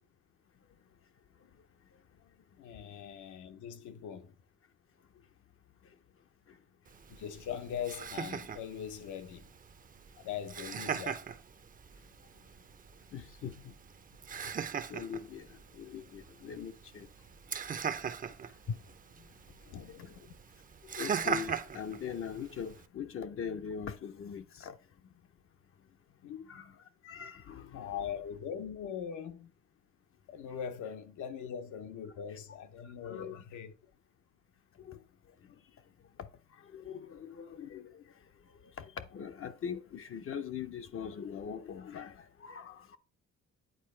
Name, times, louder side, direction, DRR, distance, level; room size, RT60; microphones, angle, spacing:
voice 1, 2.6-4.3 7.1-9.5 10.2-11.2 19.7-20.4 26.2-26.5 27.7-29.5 30.3-33.7, left 8 dB, 80° left, 0.9 m, -41 dB
Laughter, 6.9-22.9, right 6 dB, 30° right, 0.5 m, -40 dB
voice 2, 13.1-13.7 14.9-17.1 18.7-18.8 19.9-20.1 21.0-24.8 26.5-26.7 27.0-27.9 33.0-33.4 34.8-35.0 36.7-38.0 38.8-43.0, left 7 dB, 45° left, 0.6 m, -41 dB
9.1 x 4.1 x 3.2 m
cardioid pair, 90°, 30 cm